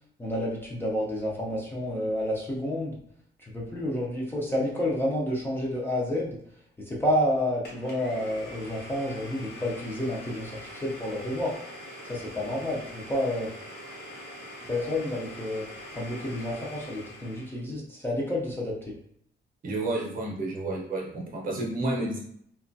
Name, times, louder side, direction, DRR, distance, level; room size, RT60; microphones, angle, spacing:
voice 1, 0.2-3.0 3.4-6.4 6.9-11.5 12.1-13.5 14.7-15.7 16.0-18.9, left 1 dB, 10° left, -4 dB, 0.4 m, -30 dB
Domestic sounds home sounds, 7.6-17.6, left 1 dB, 60° left, 0.7 m, -43 dB
voice 2, 19.6-22.2, right 2 dB, 45° right, -2 dB, 0.6 m, -30 dB
2.9 x 2.2 x 2.6 m, 0.68 s
wide cardioid pair, 175°, 19 cm